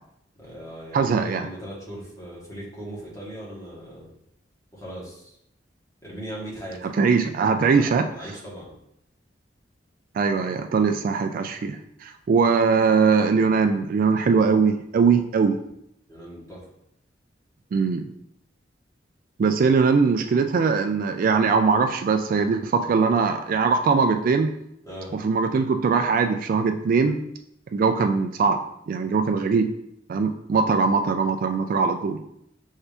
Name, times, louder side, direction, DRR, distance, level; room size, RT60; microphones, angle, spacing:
voice 1, 0.4-4.0 4.7-5.4 6.0-6.9 7.7-8.7 16.1-16.7 24.8-25.1, right 1 dB, 15° left, -6 dB, 1.6 m, -39 dB
voice 2, 0.9-1.5 7.0-8.1 10.1-15.6 17.7-18.1 19.4-24.5 25.1-27.2 27.7-28.6 28.9-29.7 30.1-32.2, right 5 dB, 50° right, 7 dB, 0.3 m, -21 dB
5.7 x 2.7 x 3.4 m, 0.76 s
head